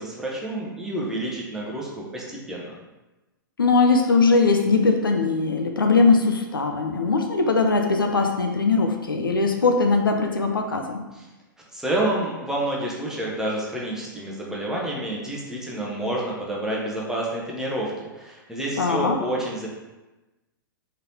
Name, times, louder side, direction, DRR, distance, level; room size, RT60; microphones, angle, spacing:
voice 1, 0.0-2.7 11.1-11.3 11.7-19.7, right 1 dB, 5° right, -4 dB, 0.8 m, -29 dB
voice 2, 3.6-11.0 18.8-19.2, left 4 dB, 75° left, 4 dB, 0.5 m, -20 dB
3.9 x 3.3 x 2.7 m, 1.1 s
figure-of-eight pair, 105°, 11 cm